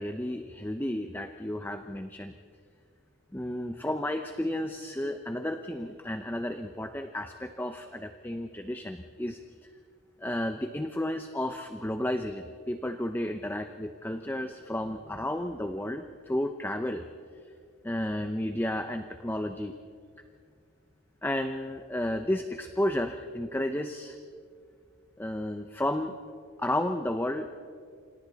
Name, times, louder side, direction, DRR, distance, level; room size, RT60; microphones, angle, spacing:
voice 1, 0.0-2.3 3.3-9.4 10.2-17.0 17.8-19.8 21.2-24.2 25.2-26.2 26.6-27.5, left 1 dB, 10° left, 7 dB, 0.6 m, -32 dB
28.5 x 27.0 x 4.0 m, 2.2 s
head